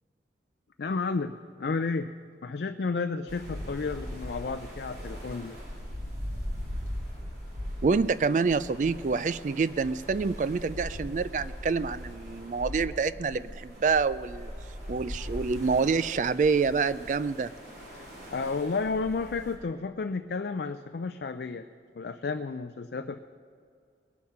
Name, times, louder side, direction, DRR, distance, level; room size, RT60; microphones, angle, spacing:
voice 1, 0.8-2.1 2.4-5.6 18.0-21.7 22.0-23.2, left 4 dB, 65° left, 7 dB, 0.4 m, -32 dB
sound 1, 3.3-19.5, equal, 65° right, 3.7 m, -40 dB
voice 2, 7.8-14.5 14.9-17.5, right 5 dB, 45° right, 15 dB, 0.3 m, -27 dB
21.0 x 7.3 x 5.7 m, 2.2 s
head